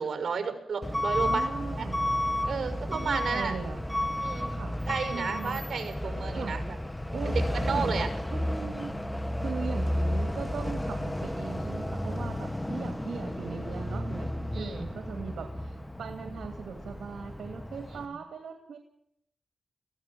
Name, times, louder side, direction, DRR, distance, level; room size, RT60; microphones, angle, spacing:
voice 1, 0.0-1.5 1.8-1.9 2.4-3.5 4.2-4.5 4.9-6.8 7.2-8.1 14.5-14.9, right 5 dB, 65° right, 8 dB, 6.2 m, -32 dB
Truck / Alarm, 0.8-18.1, left 1 dB, 10° left, 2.2 m, -32 dB
voice 2, 1.2-2.0 2.9-3.8 4.5-4.7 5.1-5.6 6.3-6.6 7.1-7.3 7.7-7.9 8.3-8.9 9.4-18.8, right 6 dB, 80° right, 6 dB, 2.6 m, -39 dB
22.5 x 16.5 x 7.7 m, 0.74 s
cardioid pair, 75°, 0 cm